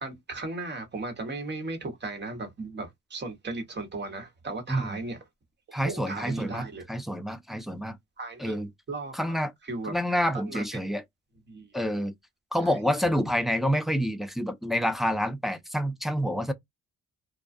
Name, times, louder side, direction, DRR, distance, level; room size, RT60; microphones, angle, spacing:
voice 1, 0.0-5.2 5.7-6.8 8.2-9.4 9.6-10.2 10.4-10.8 11.5-11.7 12.6-12.8, right 3 dB, 35° right, 1.2 m, -36 dB
voice 2, 4.7-5.0 5.7-8.0 8.4-8.7 9.1-9.5 9.9-11.0 11.7-12.1 12.5-16.5, equal, ahead, 0.4 m, -28 dB
2.3 x 2.2 x 2.5 m
cardioid pair, 90°, 30 cm